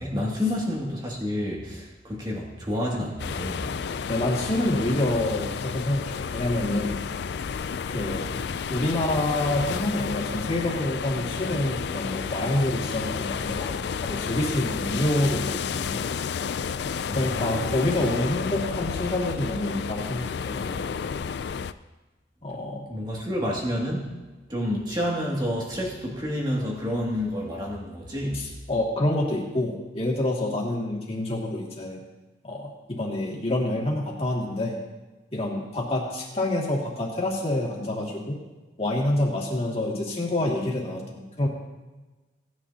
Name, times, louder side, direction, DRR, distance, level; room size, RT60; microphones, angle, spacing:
voice 1, 0.0-3.7 17.1-17.7 22.9-24.1 24.5-28.4, left 1 dB, 25° right, -3 dB, 2.3 m, -29 dB
sound 1, 3.2-21.7, left 6 dB, 60° left, 0.4 m, -31 dB
voice 2, 4.1-6.0 6.3-7.0 7.9-8.3 8.7-16.0 17.1-20.8 22.4-22.9 28.3-32.0 32.4-34.8 35.3-38.4 38.8-41.5, left 1 dB, 30° left, -3 dB, 2.2 m, -27 dB
18.0 x 9.5 x 2.8 m, 1.2 s
head